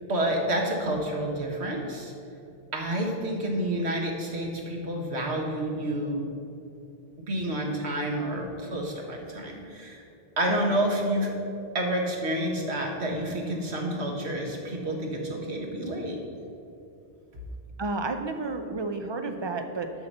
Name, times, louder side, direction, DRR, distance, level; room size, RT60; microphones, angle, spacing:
voice 1, 0.1-2.1 2.7-6.2 7.3-10.0 10.4-11.3 11.7-16.2, right 1 dB, 85° right, 0 dB, 1.7 m, -29 dB
voice 2, 17.8-20.1, right 3 dB, 30° right, 6 dB, 0.6 m, -31 dB
8.0 x 5.8 x 6.6 m, 2.7 s
omnidirectional pair, 1.1 m